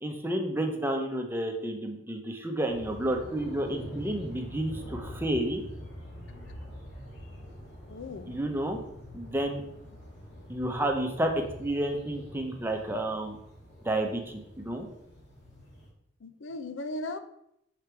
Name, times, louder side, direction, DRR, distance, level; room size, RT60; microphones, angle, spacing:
voice 1, 0.0-5.6 8.3-8.8 9.1-9.6 10.5-11.3 11.6-13.4 13.8-14.9, right 1 dB, 10° right, 3 dB, 0.8 m, -30 dB
sound 1, 2.7-15.9, equal, 65° left, 2.1 m, -45 dB
voice 2, 7.9-8.3 16.2-17.2, left 2 dB, 90° left, 10 dB, 0.6 m, -37 dB
5.2 x 5.0 x 4.5 m, 0.77 s
head